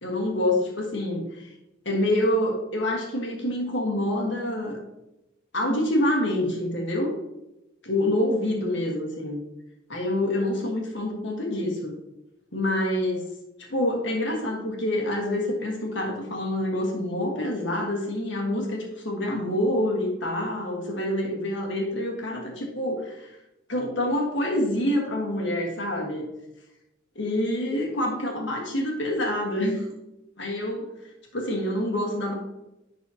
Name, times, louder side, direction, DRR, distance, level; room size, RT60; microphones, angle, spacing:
voice 1, 0.0-1.5 1.8-4.8 5.5-7.2 7.8-9.4 9.9-11.9 12.5-13.3 13.6-23.4 23.7-26.3 27.1-29.9 30.4-30.9 31.3-32.3, left 1 dB, 65° left, 0 dB, 1.5 m, -26 dB
11.0 x 4.1 x 2.8 m, 0.92 s
head